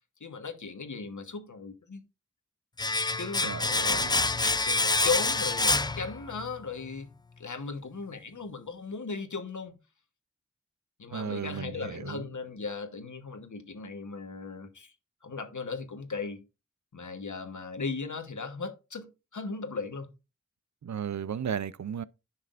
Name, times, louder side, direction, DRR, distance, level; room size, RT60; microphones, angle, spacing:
voice 1, 0.2-2.0 3.2-9.8 11.0-14.9 15.2-16.4 16.9-20.1, left 4 dB, 85° left, 1.2 m, -37 dB
Domestic sounds home sounds, 2.8-6.6 6.9-7.0, left 3 dB, 15° left, 0.3 m, -27 dB
voice 2, 3.4-4.2 11.1-12.2 20.8-22.0, right 8 dB, 70° right, 0.5 m, -35 dB
10.5 x 5.9 x 2.5 m
wide cardioid pair, 45°, 29 cm